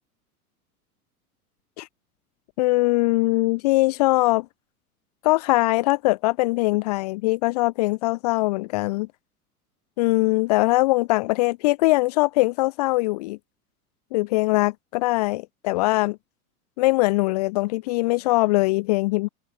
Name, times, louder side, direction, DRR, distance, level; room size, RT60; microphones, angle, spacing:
voice 1, 2.6-4.5 5.2-9.1 10.0-13.4 14.1-16.2 16.8-19.3, left 21 dB, 30° left, 0.4 m, -21 dB
figure-of-eight pair, 90°, 45 cm